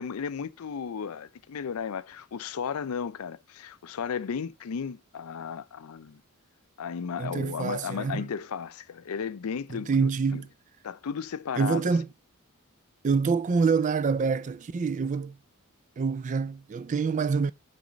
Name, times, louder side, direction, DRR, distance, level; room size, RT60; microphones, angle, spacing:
voice 1, 0.0-6.2 6.8-10.4 10.8-11.8, left 6 dB, 90° left, 0.5 m, -34 dB
voice 2, 7.2-8.3 9.7-10.5 11.6-12.1 13.0-15.4 16.0-17.5, right 5 dB, 35° right, 0.3 m, -26 dB
5.1 x 4.2 x 5.0 m
head